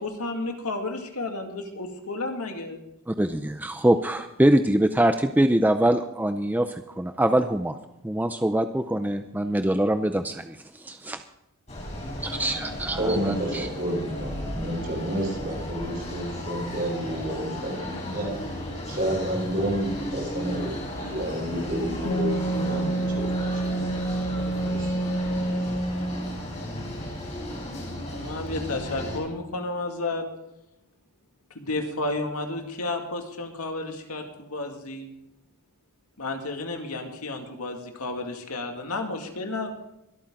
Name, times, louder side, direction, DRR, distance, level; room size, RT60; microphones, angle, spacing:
voice 1, 0.0-2.8 28.1-30.2 31.5-35.1 36.2-39.7, left 2 dB, 85° left, 3 dB, 2.3 m, -32 dB
voice 2, 3.1-7.8 8.0-11.2 12.2-13.7, right 1 dB, 10° right, 8 dB, 0.5 m, -24 dB
sound 1, 11.7-29.2, left 1 dB, 30° left, 4.4 m, -35 dB
voice 3, 12.9-18.3 18.9-23.6 24.6-25.0, right 1 dB, 40° right, -2 dB, 5.5 m, -30 dB
Wind instrument woodwind instrument, 22.0-26.5, right 1 dB, 60° left, 2.4 m, -28 dB
23.5 x 8.7 x 3.8 m, 0.85 s
head